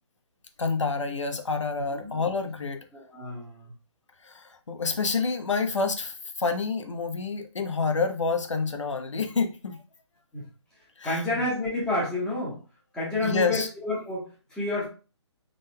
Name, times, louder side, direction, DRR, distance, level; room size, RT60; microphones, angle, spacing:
voice 1, 0.6-2.8 4.2-9.8 11.0-11.2 13.2-13.7, left 4 dB, 85° left, 7 dB, 0.8 m, -28 dB
voice 2, 2.9-3.7 10.3-10.4 11.0-12.6 12.9-14.9, left 2 dB, 5° left, -6 dB, 1.2 m, -29 dB
3.8 x 3.6 x 2.2 m, 0.33 s
hypercardioid pair, 160°, 15 cm